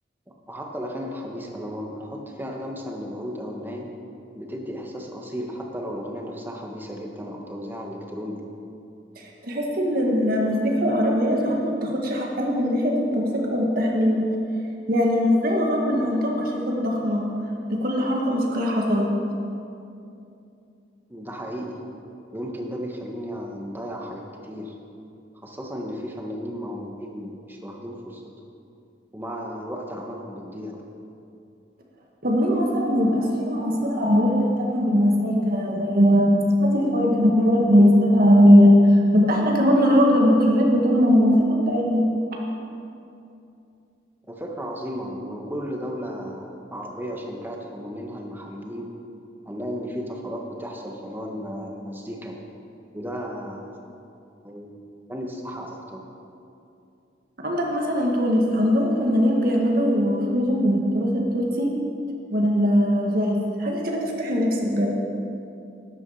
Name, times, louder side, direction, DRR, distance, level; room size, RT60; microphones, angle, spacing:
voice 1, 0.5-3.9 4.3-8.4 21.1-21.8 22.3-24.7 25.4-28.2 29.1-30.8 44.3-48.9 49.4-52.4 52.9-53.7 54.4-54.7 55.1-56.0, equal, 10° right, 0 dB, 1.5 m, -34 dB
voice 2, 9.2-14.3 14.9-17.2 17.7-19.1 32.2-42.1 57.4-61.8 62.3-64.9, equal, 50° right, -1 dB, 1.6 m, -20 dB
13.0 x 11.0 x 5.7 m, 2.7 s
head